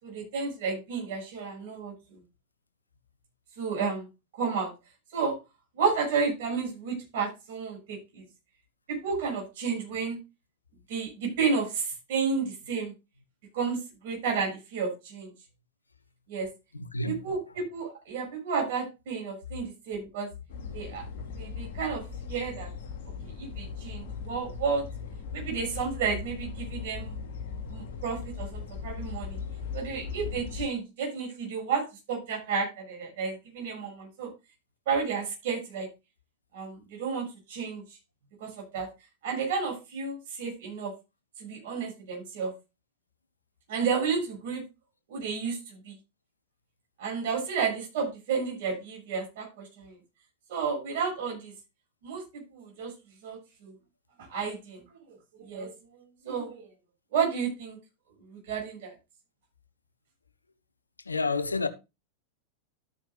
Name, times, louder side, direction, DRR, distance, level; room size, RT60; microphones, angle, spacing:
voice 1, 0.0-2.2 3.6-4.1 4.3-4.7 5.1-5.4 5.7-8.2 8.9-10.2 10.9-12.9 13.5-15.3 16.3-16.5 17.1-20.3 20.7-21.0 21.4-22.7 23.4-24.8 25.3-27.2 27.7-29.4 29.7-34.3 34.9-35.9 36.5-37.8 38.4-38.9 39.2-40.9 41.4-42.5 43.7-44.6 45.1-46.0 47.0-50.0 50.5-51.5 52.0-52.9 53.2-53.7 54.2-54.8 55.1-56.7 57.1-57.8 58.2-58.9, right 5 dB, 50° right, 6.4 m, -32 dB
voice 2, 16.7-17.3 61.1-61.7, left 3 dB, 80° left, 0.9 m, -29 dB
sound 1, 20.5-30.7, left 5 dB, 55° left, 2.3 m, -38 dB
13.0 x 9.0 x 2.5 m
figure-of-eight pair, 90°, 0 cm